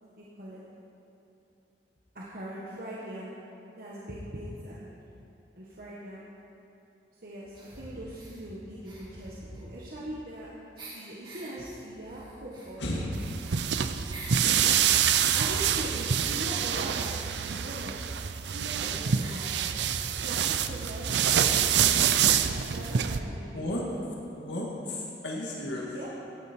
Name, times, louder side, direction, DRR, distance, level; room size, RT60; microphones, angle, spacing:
voice 1, 0.0-0.6 2.1-3.3 3.8-4.9 5.6-6.3 7.2-10.5 10.8-12.8 15.3-19.7 20.2-23.8 25.9-26.1, right 1 dB, 55° right, -6 dB, 1.6 m, -41 dB
sound 1, 7.5-8.4 8.8-10.4 10.8-11.5 12.0-14.5 14.9-17.2 18.1-18.2 18.4-18.5 19.2-19.6, right 2 dB, 25° right, 2.7 m, -48 dB
voice 2, 12.8-13.1 23.5-23.8 24.4-25.9, left 1 dB, 85° left, -3 dB, 2.0 m, -34 dB
sound 2, 13.1-23.2, right 8 dB, 75° right, 0.6 m, -26 dB
17.0 x 9.7 x 4.5 m, 2.9 s
head